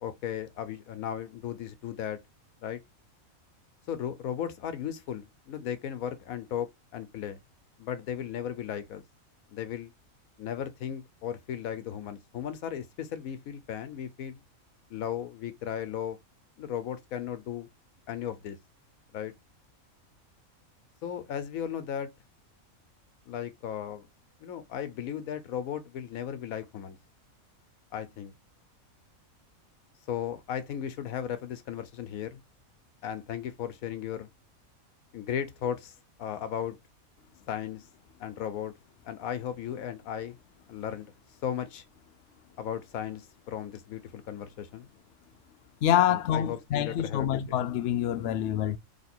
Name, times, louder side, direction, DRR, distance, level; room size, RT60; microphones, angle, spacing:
voice 1, 0.0-2.2 2.6-2.8 3.9-7.4 7.8-9.0 9.5-9.9 10.4-14.4 14.9-16.2 16.6-17.7 18.1-18.6 19.1-19.3 21.0-22.1 23.3-24.1 24.4-27.0 27.9-28.3 30.1-32.4 33.0-34.3 35.1-36.8 37.5-37.9 38.2-38.7 39.0-40.4 40.7-41.1 41.4-41.8 42.6-44.9 46.1-47.6, left 9 dB, 85° left, 1.1 m, -36 dB
voice 2, 45.8-48.8, left 10 dB, 65° left, 0.8 m, -26 dB
3.2 x 2.9 x 4.3 m
omnidirectional pair, 1.5 m